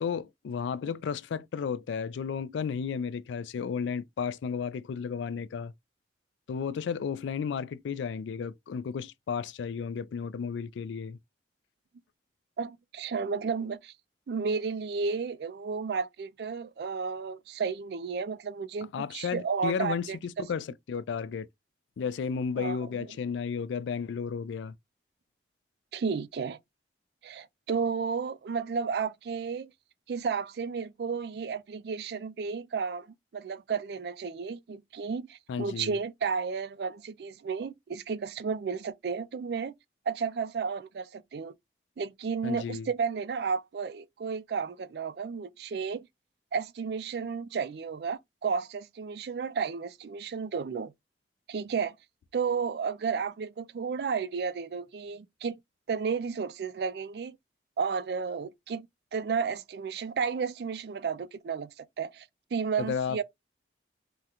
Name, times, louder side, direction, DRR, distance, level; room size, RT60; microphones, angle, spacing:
voice 1, 0.0-5.7 6.5-11.2 18.9-21.5 22.0-24.8 35.5-35.9 42.4-42.9 62.9-63.2, left 6 dB, 85° left, 0.3 m, -33 dB
voice 2, 12.6-13.9 14.3-20.2 22.6-22.9 25.9-26.6 27.2-29.7 30.1-39.7 40.1-41.5 42.0-46.1 46.5-50.9 51.5-52.0 52.3-55.6 55.9-57.4 57.8-58.9 59.1-62.3 62.5-63.2, right 5 dB, 60° right, 0.3 m, -32 dB
3.6 x 2.1 x 2.8 m
head